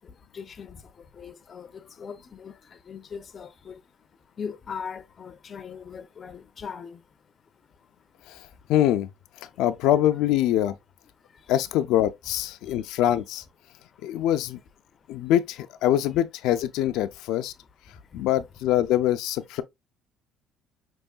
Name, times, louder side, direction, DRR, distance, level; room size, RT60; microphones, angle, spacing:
voice 1, 0.0-8.7 9.4-9.6 11.2-11.5 12.6-13.0 13.7-14.3 14.9-15.3 17.9-18.3, left 6 dB, 30° left, 0.5 m, -42 dB
voice 2, 8.3-9.1 9.4-10.8 11.5-13.4 14.0-14.6 15.1-17.5 18.1-19.6, left 12 dB, 85° left, 0.4 m, -24 dB
5.4 x 3.0 x 2.2 m
cardioid pair, 150°, 0 cm